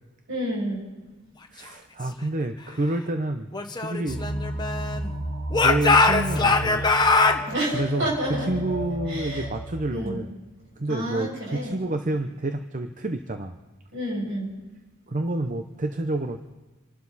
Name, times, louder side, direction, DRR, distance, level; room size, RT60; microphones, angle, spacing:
voice 1, 0.3-0.8 7.5-8.5 9.1-9.4 9.9-10.2 10.9-11.8 13.9-14.5, right 1 dB, 60° right, -3 dB, 7.0 m, -29 dB
voice 2, 1.5-4.3 4.9-5.1 5.5-6.8 7.7-10.3 10.8-13.6 15.1-16.5, right 2 dB, 35° right, 6 dB, 0.8 m, -29 dB
Speech / Shout, 3.5-5.1 5.5-7.4, left 3 dB, 20° left, 1.1 m, -21 dB
sound 1, 4.1-9.7, equal, 80° right, 2.5 m, -32 dB
28.0 x 12.0 x 4.2 m, 1.2 s
head